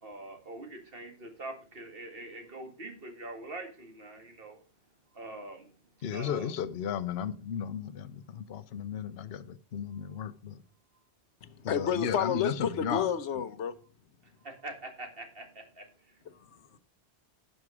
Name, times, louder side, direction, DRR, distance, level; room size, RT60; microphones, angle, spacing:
voice 1, 0.0-4.6 5.1-5.7 6.1-6.5 14.2-16.2, right 2 dB, 55° right, 5 dB, 2.1 m, -44 dB
voice 2, 6.0-10.6 11.6-13.1, left 8 dB, 65° left, 12 dB, 0.9 m, -35 dB
voice 3, 11.4-13.7 16.3-16.8, left 8 dB, 90° left, 12 dB, 1.2 m, -31 dB
11.0 x 6.6 x 4.8 m, 0.36 s
omnidirectional pair, 1.2 m